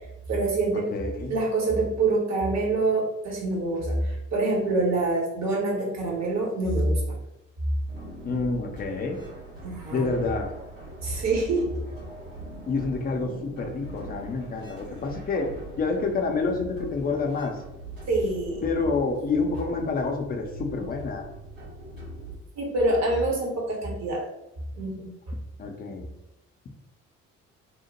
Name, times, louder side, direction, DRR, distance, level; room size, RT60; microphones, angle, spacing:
voice 1, 0.3-0.9 1.3-7.2 9.6-10.2 11.0-11.8 18.1-18.6 22.6-24.3 24.7-25.1, right 2 dB, 45° right, -1 dB, 0.9 m, -26 dB
voice 2, 0.9-1.3 8.2-9.2 9.9-10.5 12.7-17.6 18.6-21.3 25.6-26.1, left 4 dB, 25° left, 3 dB, 0.5 m, -28 dB
sound 1, 7.9-22.3, right 1 dB, 85° right, 1.3 m, -41 dB
2.8 x 2.1 x 2.9 m, 0.90 s
figure-of-eight pair, 45°, 38 cm